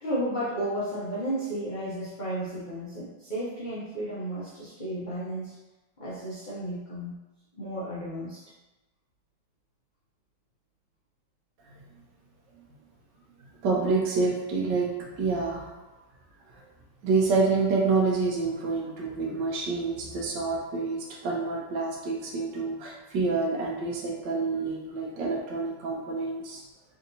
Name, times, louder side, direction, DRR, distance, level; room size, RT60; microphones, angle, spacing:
voice 1, 0.0-5.5 6.0-7.2 7.5-8.4, right 1 dB, 55° left, -10 dB, 0.5 m, -33 dB
voice 2, 13.6-15.7 17.0-26.6, right 4 dB, 75° right, -1 dB, 1.3 m, -27 dB
3.8 x 2.6 x 2.7 m, 1.1 s
omnidirectional pair, 2.0 m